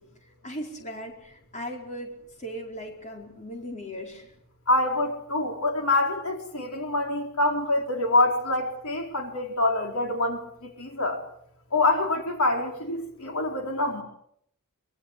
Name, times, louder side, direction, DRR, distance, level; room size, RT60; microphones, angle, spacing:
voice 1, 0.4-2.1 2.4-4.3, equal, 35° left, 2 dB, 4.5 m, -37 dB
voice 2, 4.7-11.2 11.7-14.0, left 2 dB, 70° left, 3 dB, 4.5 m, -26 dB
25.0 x 22.0 x 7.6 m, 0.71 s
head